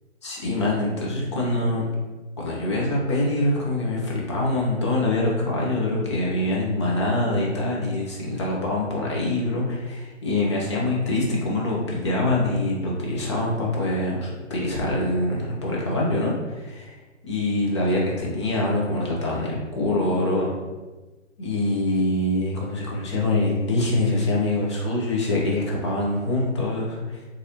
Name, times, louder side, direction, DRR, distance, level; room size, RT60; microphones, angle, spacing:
voice 1, 0.2-1.8 2.4-20.5 21.4-27.2, left 2 dB, 25° left, -3 dB, 0.5 m, -24 dB
4.0 x 2.5 x 2.7 m, 1.2 s
figure-of-eight pair, 135°, 37 cm